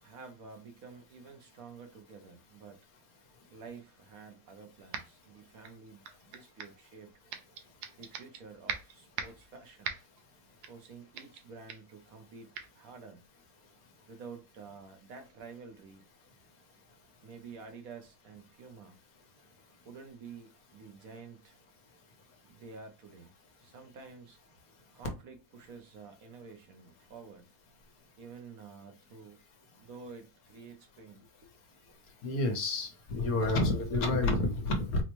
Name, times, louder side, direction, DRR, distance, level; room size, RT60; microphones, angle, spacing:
voice 1, 0.0-2.8 3.5-7.2 8.0-10.0 10.7-13.2 14.1-16.0 17.2-19.0 19.8-21.6 22.4-23.3 23.6-24.4 24.9-27.5 28.2-29.4 29.8-31.5, right 5 dB, 65° right, 1.1 m, -50 dB
sound 1, 4.9-5.3 5.6-6.8 7.3-8.4 8.7-9.5 9.8-10.2 10.6-10.9 11.2-11.4 11.7-11.9 12.5-12.7, right 7 dB, 85° right, 1.2 m, -40 dB
voice 2, 32.2-35.0, left 2 dB, 65° left, 1.3 m, -29 dB
4.2 x 2.1 x 3.0 m
omnidirectional pair, 1.7 m